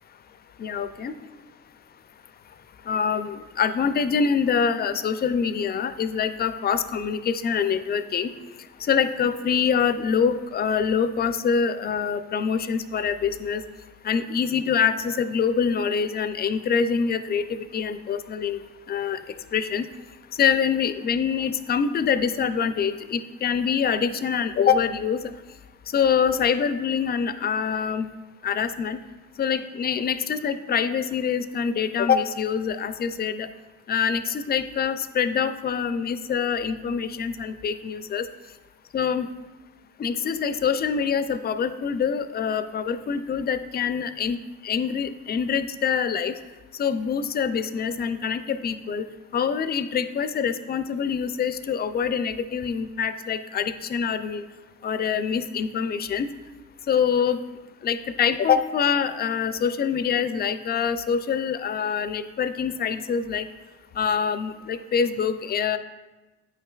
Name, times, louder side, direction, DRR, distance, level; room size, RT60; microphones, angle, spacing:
voice 1, 0.6-1.1 2.9-8.3 8.8-13.6 14.0-18.6 18.9-19.2 19.5-19.9 20.4-25.3 25.9-28.1 28.4-29.0 29.4-33.5 33.9-38.3 38.9-39.3 40.0-46.3 46.8-49.1 49.3-54.4 54.8-56.3 56.9-57.4 57.8-63.5 64.0-65.8, left 7 dB, 35° left, 11 dB, 0.4 m, -25 dB
8.6 x 5.5 x 2.3 m, 1.2 s
cardioid pair, 90°, 30 cm